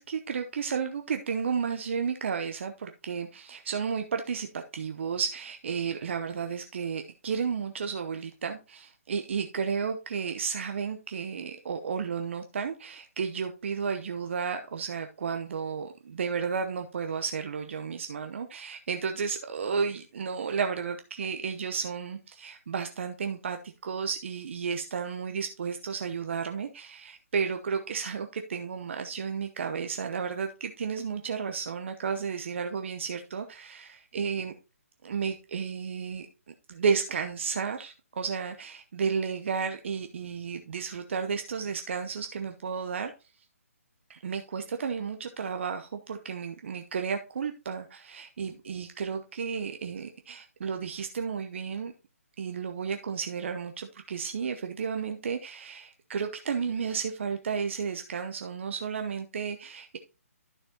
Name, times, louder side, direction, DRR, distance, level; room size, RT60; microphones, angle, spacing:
voice 1, 0.0-34.5 35.0-43.1 44.1-51.9 52.4-60.0, right 6 dB, 50° right, 0.8 m, -32 dB
11.5 x 6.5 x 2.8 m
figure-of-eight pair, 145°, 8 cm